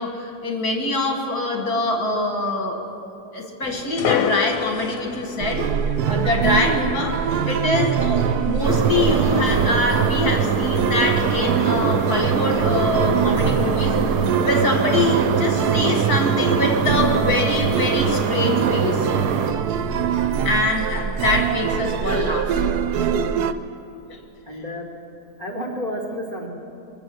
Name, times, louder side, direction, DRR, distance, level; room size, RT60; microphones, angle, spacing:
voice 1, 0.0-2.8 3.3-5.7 6.1-14.0 14.4-19.1 20.4-22.7 23.0-23.4, left 2 dB, 70° left, 2 dB, 2.5 m, -24 dB
sound 1, 3.6-9.4, left 8 dB, 90° left, 1.2 m, -30 dB
sound 2, 5.4-23.5, right 8 dB, 80° right, 1.1 m, -24 dB
sound 3, 8.6-19.5, right 5 dB, 65° right, 1.3 m, -23 dB
voice 2, 20.0-20.4 24.5-24.9 25.4-26.5, equal, 35° right, -2 dB, 3.0 m, -31 dB
23.0 x 7.7 x 7.8 m, 2.8 s
omnidirectional pair, 1.7 m